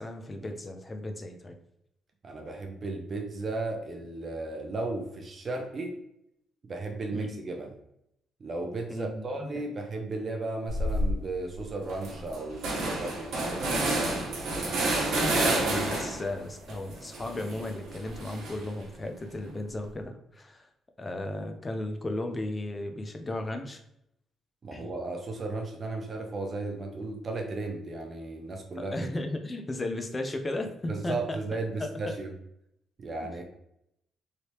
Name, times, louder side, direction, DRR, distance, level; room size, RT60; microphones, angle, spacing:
voice 1, 0.0-1.6 7.1-7.4 8.9-9.6 15.1-20.7 21.0-23.8 24.7-24.9 28.8-31.4 31.8-32.1 33.2-33.4, left 1 dB, 25° left, 5 dB, 0.5 m, -35 dB
voice 2, 2.2-5.9 6.7-7.7 8.4-14.3 24.6-29.0 30.9-32.3 33.0-33.4, right 2 dB, 40° right, 3 dB, 0.6 m, -35 dB
sound 1, 10.7-11.2 11.6-11.7 11.9-16.3 16.7-18.8, right 2 dB, 80° right, 1.0 m, -29 dB
3.3 x 2.8 x 2.8 m, 0.77 s
cardioid pair, 90°, 0 cm